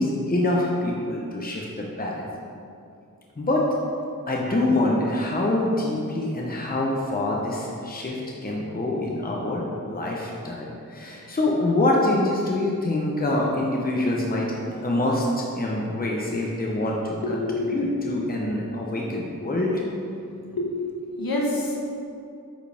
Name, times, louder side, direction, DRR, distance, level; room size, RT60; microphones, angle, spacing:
voice 1, 0.0-2.2 3.4-3.7 4.3-14.5 14.8-17.4 17.7-19.8, left 1 dB, 25° left, -2 dB, 0.9 m, -25 dB
voice 2, 17.2-17.7 20.4-20.7 21.2-21.9, left 2 dB, 85° left, -2 dB, 1.3 m, -27 dB
8.8 x 4.9 x 3.5 m, 2.5 s
wide cardioid pair, 65°, 35 cm